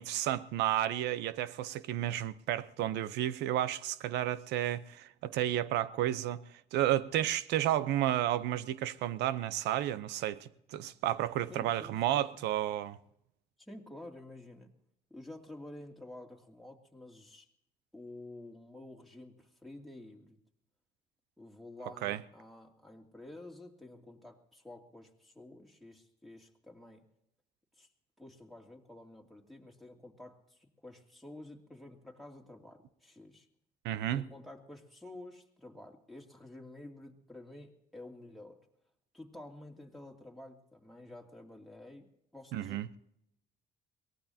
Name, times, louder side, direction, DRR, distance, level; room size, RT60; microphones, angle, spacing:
voice 1, 0.0-6.4 6.7-13.0 22.0-22.2 33.8-34.2 42.5-42.9, right 12 dB, 85° right, 0.7 m, -32 dB
voice 2, 11.5-12.4 13.6-14.7 15.1-17.5 17.9-20.4 21.4-27.0 27.8-27.9 28.2-33.5 34.1-38.6 39.1-42.1 42.3-42.8, left 1 dB, ahead, 2.6 m, -50 dB
23.0 x 18.5 x 2.8 m
cardioid pair, 110°, 17 cm